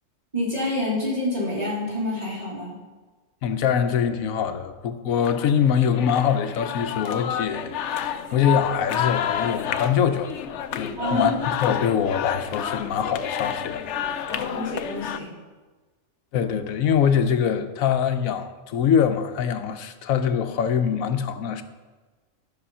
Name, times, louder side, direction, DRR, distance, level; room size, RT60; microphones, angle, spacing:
voice 1, 0.3-2.7 11.0-11.4 14.3-15.3, left 1 dB, 30° right, -6 dB, 3.2 m, -27 dB
voice 2, 3.4-10.3 10.7-11.3 11.6-14.5 16.3-21.6, left 7 dB, 90° left, 9 dB, 1.1 m, -24 dB
sound 1, 5.2-15.2, left 9 dB, 65° left, 0.8 m, -29 dB
13.0 x 6.3 x 5.5 m, 1.3 s
omnidirectional pair, 1.4 m